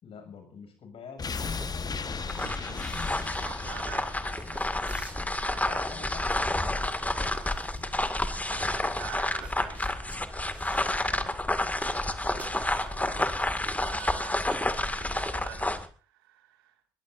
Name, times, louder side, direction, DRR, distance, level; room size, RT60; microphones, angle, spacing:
voice 1, 0.0-2.9 5.6-7.9 10.9-11.4, left 6 dB, 55° left, 6 dB, 6.8 m, -48 dB
sound 1, 1.2-6.1 6.4-6.5, left 5 dB, 35° left, 1.4 m, -37 dB
sound 2, 1.5-15.3, right 1 dB, 10° right, 5.4 m, -48 dB
sound 3, 2.2-15.9, left 1 dB, 10° left, 2.2 m, -30 dB
voice 2, 2.4-5.8 8.5-11.0 11.9-13.4 13.7-14.5 14.7-16.9, right 10 dB, 80° right, 6 dB, 2.3 m, -47 dB
22.0 x 21.0 x 2.7 m, 0.38 s
figure-of-eight pair, 45°, 12 cm